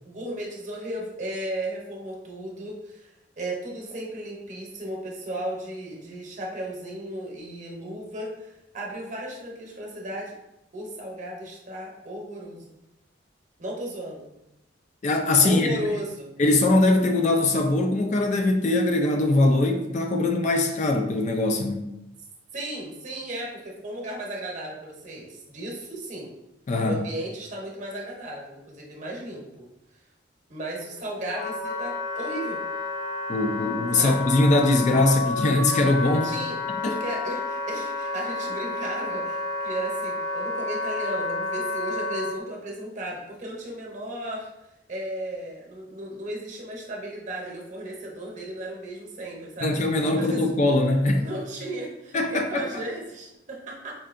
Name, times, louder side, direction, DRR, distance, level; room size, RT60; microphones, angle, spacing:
voice 1, 0.0-10.3 10.7-12.7 13.6-14.3 15.4-16.3 22.5-26.3 26.8-29.7 30.5-32.6 33.9-34.2 36.2-36.6 36.8-44.5 44.9-49.8 50.1-50.5 51.1-53.9, right 1 dB, 40° right, -1 dB, 0.8 m, -35 dB
voice 2, 15.0-15.8 16.4-21.9 26.7-27.0 33.3-36.3 49.6-51.2 52.1-52.7, left 2 dB, 40° left, 4 dB, 0.3 m, -21 dB
Wind instrument woodwind instrument, 30.8-42.4, left 3 dB, 75° left, 0.7 m, -31 dB
4.4 x 2.7 x 2.5 m, 0.90 s
head